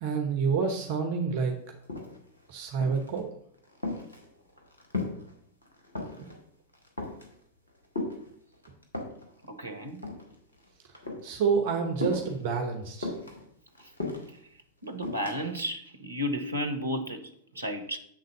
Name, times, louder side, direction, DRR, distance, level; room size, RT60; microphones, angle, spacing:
voice 1, 0.0-1.5 2.5-3.3 6.2-6.3 11.2-13.1, right 5 dB, 50° right, 1.0 m, -28 dB
sound 1, 1.4-1.5 1.7-2.4 2.8-3.2 3.5-5.3 5.6-6.4 6.7-7.3 7.9-9.3 9.9-10.7 10.9-11.3 12.0-12.4 13.0-14.4 15.0-15.4, left 2 dB, 80° left, 1.7 m, -36 dB
voice 2, 9.5-10.0 14.8-17.2 17.6-18.0, equal, 80° right, 0.9 m, -33 dB
7.5 x 3.9 x 6.6 m
figure-of-eight pair, 90°, 0 cm